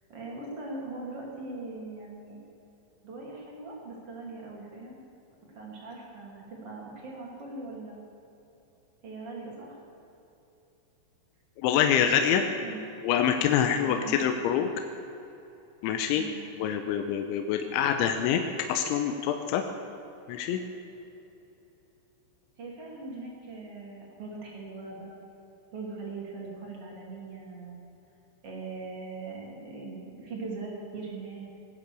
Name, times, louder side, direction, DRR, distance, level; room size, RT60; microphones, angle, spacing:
voice 1, 0.1-2.4 3.0-5.0 5.4-8.0 9.0-9.8 12.3-12.8 13.8-14.1 16.1-16.5 22.6-25.2 25.7-27.8 28.4-31.5, right 3 dB, 40° right, -2 dB, 2.7 m, -40 dB
voice 2, 11.6-12.4 13.0-14.7 15.8-16.3 16.6-18.4 18.7-19.6 20.3-20.6, left 9 dB, 85° left, 6 dB, 3.1 m, -25 dB
18.5 x 10.0 x 6.8 m, 3.0 s
omnidirectional pair, 5.4 m